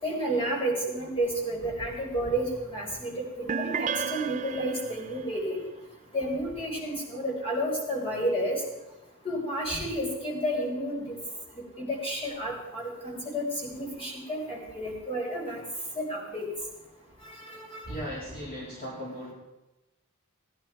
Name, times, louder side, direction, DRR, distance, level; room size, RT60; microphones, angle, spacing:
voice 1, 0.0-5.6 6.1-8.6 9.2-11.2 11.8-15.6 15.9-16.5 17.2-17.9, right 1 dB, 25° left, -3 dB, 4.7 m, -31 dB
sound 1, 3.5-5.2, right 6 dB, 35° right, 0.5 m, -32 dB
voice 2, 17.9-19.3, equal, 40° left, -5 dB, 2.8 m, -37 dB
18.0 x 11.0 x 4.6 m, 1.0 s
head